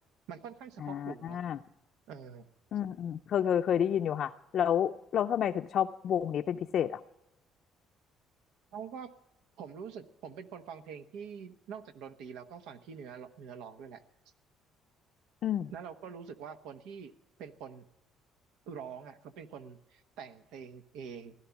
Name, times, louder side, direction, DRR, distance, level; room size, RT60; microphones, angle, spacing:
voice 1, 0.3-1.4 2.1-2.5 8.7-9.1 9.6-14.0 15.7-17.1 17.4-17.9 18.7-21.3, right 7 dB, 90° right, 9 dB, 1.1 m, -45 dB
voice 2, 0.8-1.6 2.7-7.0 15.4-15.7, left 9 dB, 55° left, 4 dB, 0.5 m, -30 dB
16.5 x 12.0 x 7.1 m, 0.91 s
cardioid pair, 110°, 0 cm